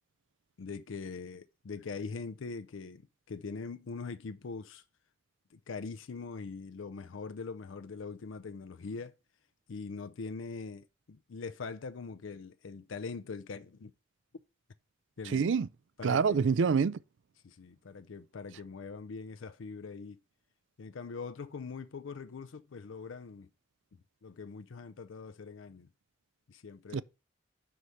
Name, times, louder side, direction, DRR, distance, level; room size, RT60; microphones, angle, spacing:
voice 1, 0.6-3.0 3.3-4.8 5.5-9.2 9.7-13.9 15.2-15.4 16.0-16.5 17.4-20.2 20.8-23.5 24.2-25.9 26.5-27.0, left 4 dB, 85° left, 0.5 m, -42 dB
voice 2, 15.3-15.7 16.0-17.0 26.9-27.0, right 6 dB, 75° right, 0.4 m, -26 dB
5.6 x 4.8 x 6.4 m
head